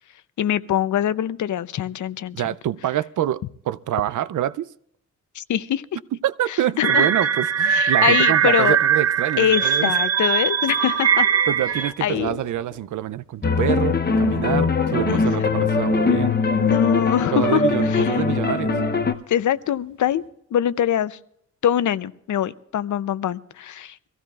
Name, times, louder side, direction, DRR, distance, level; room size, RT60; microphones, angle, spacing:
voice 1, 0.4-2.5 5.3-5.8 6.8-7.1 7.7-8.8 9.4-11.3 12.0-12.4 15.1-15.3 16.5-17.6 17.9-18.2 19.3-20.2 20.5-21.2 21.6-24.1, left 10 dB, 80° left, 0.6 m, -23 dB
voice 2, 2.3-4.7 6.2-9.9 11.5-16.3 17.3-18.8, right 12 dB, 90° right, 0.5 m, -26 dB
sound 1, 6.8-11.9, right 8 dB, 55° right, 0.8 m, -20 dB
sound 2, 7.4-20.3, equal, 20° left, 7.9 m, -48 dB
sound 3, 13.4-19.1, left 4 dB, 35° left, 0.8 m, -21 dB
24.5 x 15.5 x 2.4 m
wide cardioid pair, 140°, 29 cm